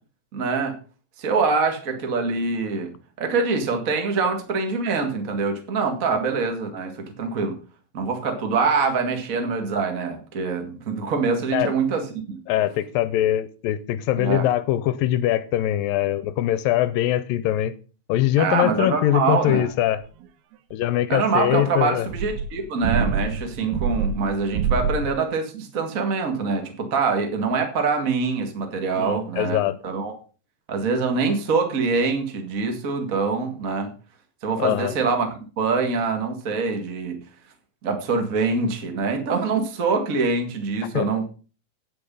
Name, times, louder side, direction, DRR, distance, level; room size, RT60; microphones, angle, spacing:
voice 1, 0.3-0.7 1.2-2.9 3.2-7.6 7.9-12.4 14.2-14.5 18.4-19.7 21.1-30.1 30.7-33.9 34.4-35.3 35.6-37.2 37.8-41.2, right 4 dB, 40° right, 1.3 m, -24 dB
voice 2, 12.5-17.7 18.1-20.0 20.7-22.1 29.0-29.8 34.6-34.9 40.9-41.1, left 13 dB, 80° left, 2.2 m, -22 dB
sound 1, 20.2-20.3 22.1-25.2, right 6 dB, 85° right, 2.9 m, -26 dB
9.2 x 8.6 x 5.4 m
omnidirectional pair, 4.4 m